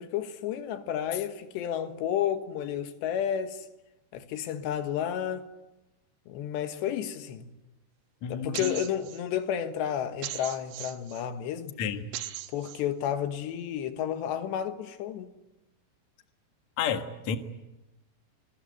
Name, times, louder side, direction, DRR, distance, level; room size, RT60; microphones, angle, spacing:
voice 1, 0.0-3.7 4.1-5.5 6.3-7.5 8.3-11.8 12.5-15.3, left 9 dB, 90° left, 3.7 m, -31 dB
voice 2, 8.2-8.8 11.8-12.1 16.8-17.4, left 7 dB, 55° left, 2.4 m, -31 dB
sound 1, 8.5-9.2 10.2-11.2 12.1-12.8, right 13 dB, 90° right, 3.4 m, -38 dB
27.0 x 21.5 x 9.3 m
omnidirectional pair, 4.9 m